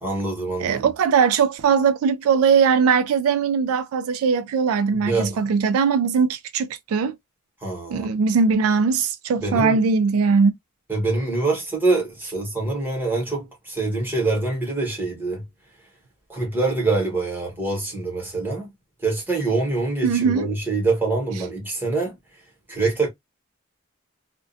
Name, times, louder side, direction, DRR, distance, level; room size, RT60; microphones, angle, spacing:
voice 1, 0.0-0.9 5.0-5.4 7.6-8.1 9.4-9.8 10.9-15.4 16.3-18.7 19.0-22.2 22.7-23.1, right 3 dB, 10° right, 1.0 m, -25 dB
voice 2, 0.6-7.2 7.9-10.5 20.0-20.4, right 5 dB, 90° right, 0.3 m, -20 dB
2.4 x 2.1 x 2.5 m
head